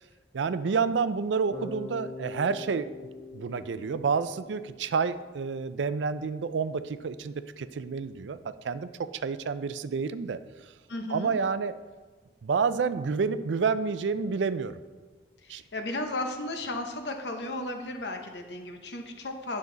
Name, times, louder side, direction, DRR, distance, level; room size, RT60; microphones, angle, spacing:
voice 1, 0.3-2.9 3.3-8.9 9.2-10.4 11.1-11.7 12.4-14.8 15.5-15.6, right 5 dB, 85° right, 13 dB, 0.4 m, -29 dB
Bass guitar, 1.5-5.5, left 3 dB, 25° left, 1.2 m, -43 dB
voice 2, 10.9-11.3 15.4-19.6, left 2 dB, 70° left, 5 dB, 1.0 m, -34 dB
9.5 x 6.3 x 4.0 m, 1.3 s
head